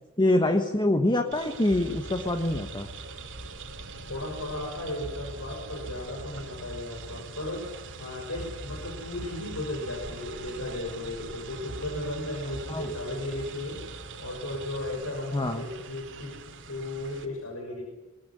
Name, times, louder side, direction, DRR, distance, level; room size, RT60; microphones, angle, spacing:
voice 1, 0.2-2.9 12.7-12.9 15.3-15.6, left 1 dB, 20° left, 7 dB, 1.3 m, -25 dB
sound 1, 1.3-17.2, right 5 dB, 60° right, 2.6 m, -44 dB
sound 2, 1.7-15.0, equal, 85° right, 3.2 m, -44 dB
voice 2, 4.1-7.7 8.0-13.8 14.2-16.4 16.7-17.8, left 1 dB, 80° left, 0 dB, 5.9 m, -35 dB
22.0 x 20.0 x 9.8 m, 1.1 s
head